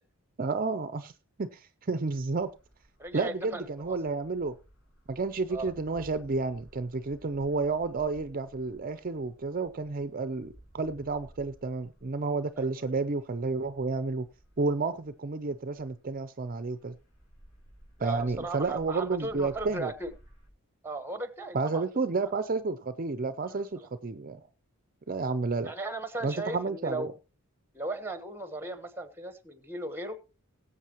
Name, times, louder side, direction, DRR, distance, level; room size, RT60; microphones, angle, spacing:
voice 1, 0.4-1.1 1.4-2.5 3.1-4.5 5.1-14.3 14.6-16.9 18.0-19.9 21.5-24.4 25.1-25.7 26.2-27.1, right 3 dB, 40° right, 0.5 m, -31 dB
sound 1, 2.3-16.2 16.4-20.5, right 1 dB, 80° left, 6.5 m, -56 dB
voice 2, 3.0-4.0 5.5-5.7 12.6-13.0 18.0-20.1 20.8-21.8 23.5-23.9 25.6-27.1 27.7-30.2, right 2 dB, 10° right, 1.1 m, -37 dB
20.0 x 8.2 x 3.0 m
head